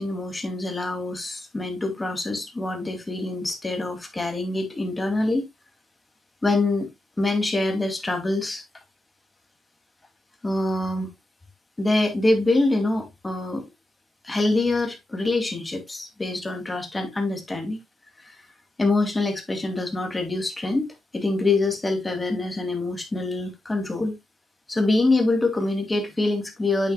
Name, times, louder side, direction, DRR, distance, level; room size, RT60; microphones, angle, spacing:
voice 1, 0.0-5.5 6.4-6.9 7.2-8.6 10.4-11.1 11.8-13.6 14.2-17.8 18.2-18.4 18.8-24.2 24.7-26.9, left 2 dB, 20° left, 2.4 m, -25 dB
8.5 x 6.5 x 2.2 m
cardioid pair, 90°, 0 cm